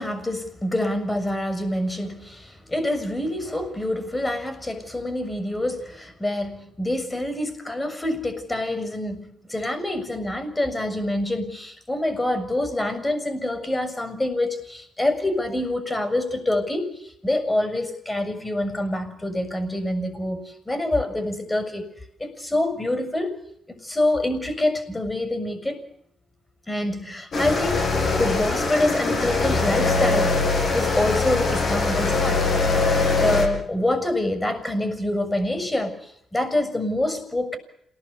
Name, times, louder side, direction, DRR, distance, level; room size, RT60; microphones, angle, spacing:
voice 1, 0.0-21.9 22.2-23.4 23.7-25.8 26.7-27.8 28.2-32.5 33.2-37.6, left 1 dB, 20° left, 11 dB, 6.7 m, -26 dB
sound 1, 27.3-33.5, left 3 dB, 55° left, 8.0 m, -22 dB
28.0 x 19.0 x 8.3 m, 0.75 s
hypercardioid pair, 50°, 0 cm